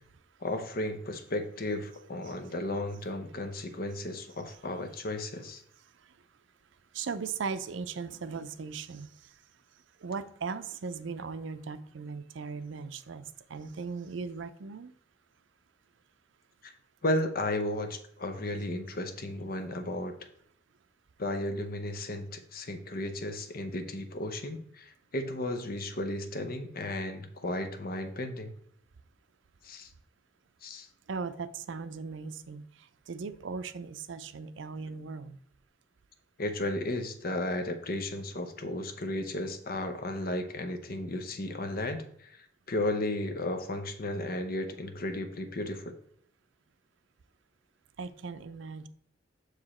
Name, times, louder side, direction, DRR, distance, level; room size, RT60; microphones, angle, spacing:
voice 1, 0.4-5.6 16.6-16.7 17.0-20.1 21.2-28.5 29.6-29.9 30.6-30.9 36.4-46.0, left 1 dB, 50° left, 7 dB, 0.8 m, -34 dB
voice 2, 6.9-9.1 10.0-14.9 31.1-32.6 33.1-35.4 48.0-48.9, right 5 dB, 75° right, 11 dB, 0.5 m, -38 dB
6.5 x 4.9 x 4.2 m, 0.66 s
head